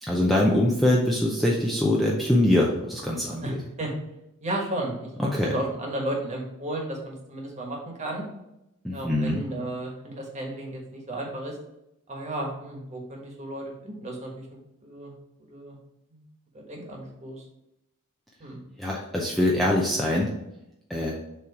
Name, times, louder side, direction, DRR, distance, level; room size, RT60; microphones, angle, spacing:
voice 1, 0.0-3.4 5.2-5.6 8.8-9.4 18.8-20.3 20.9-21.2, left 1 dB, ahead, -3 dB, 0.6 m, -23 dB
voice 2, 3.4-3.9 4.4-8.2 8.9-11.6 12.1-14.5 14.8-15.1 15.5-15.8 16.1-16.2 16.5-17.4 18.4-18.6, right 1 dB, 30° right, -1 dB, 1.4 m, -34 dB
6.9 x 3.1 x 4.8 m, 0.87 s
head